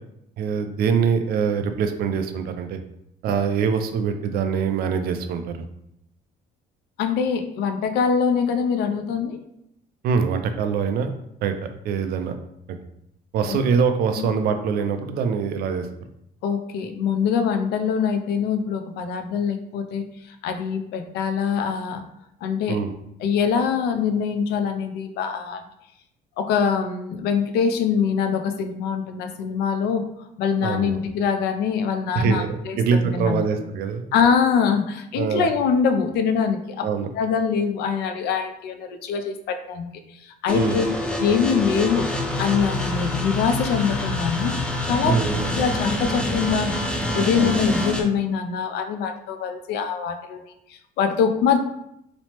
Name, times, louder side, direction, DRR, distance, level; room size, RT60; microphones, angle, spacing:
voice 1, 0.4-2.8 3.2-5.4 10.0-11.1 11.4-11.5 11.8-12.3 13.3-15.9 22.7-22.9 30.6-31.0 32.1-34.0 35.2-35.5 36.8-37.1 40.5-40.8 45.0-45.5 47.4-47.6, right 6 dB, 65° right, 7 dB, 0.4 m, -23 dB
voice 2, 7.0-9.4 13.5-13.6 14.2-14.3 16.4-22.0 22.4-22.8 23.2-25.6 26.4-30.0 30.4-33.5 34.1-36.9 37.1-40.9 41.2-42.1 42.4-44.5 44.8-45.1 45.5-46.8 47.1-50.5 51.0-51.6, left 6 dB, 75° left, 6 dB, 0.4 m, -23 dB
sound 1, 40.5-48.0, left 1 dB, 5° left, 0.4 m, -26 dB
3.0 x 2.0 x 2.8 m, 0.78 s
cardioid pair, 110°, 17 cm